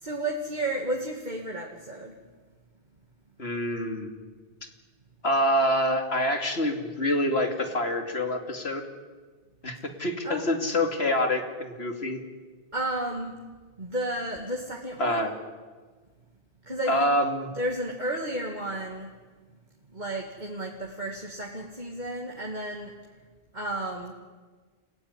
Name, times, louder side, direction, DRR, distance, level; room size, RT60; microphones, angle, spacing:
voice 1, 0.0-2.2 10.2-10.5 12.7-13.4 13.8-15.2 16.7-17.1 17.5-19.1 19.9-22.9 23.5-24.1, right 1 dB, 45° right, -1 dB, 2.4 m, -32 dB
voice 2, 3.4-4.1 5.2-8.8 9.6-12.2 15.0-15.3 16.9-17.5, left 1 dB, 75° left, 5 dB, 3.1 m, -26 dB
29.0 x 17.0 x 9.8 m, 1.4 s
omnidirectional pair, 1.1 m